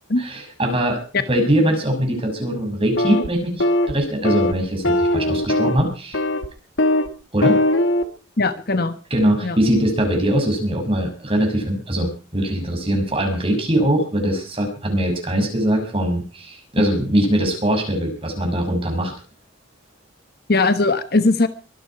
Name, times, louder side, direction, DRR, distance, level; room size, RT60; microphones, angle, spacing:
voice 1, 0.2-1.0 1.3-6.2 7.3-7.6 9.1-19.1, right 1 dB, 30° right, 3 dB, 6.5 m, -21 dB
sound 1, 3.0-3.3 3.6-3.9 4.2-4.5 4.8-5.8 6.1-6.5 6.8-7.1 7.4-8.0, left 1 dB, 75° left, 1.6 m, -19 dB
voice 2, 8.4-9.0 9.4-9.6 16.8-16.9 20.5-21.5, left 3 dB, 50° left, 11 dB, 1.2 m, -19 dB
23.5 x 10.0 x 4.7 m, 0.36 s
head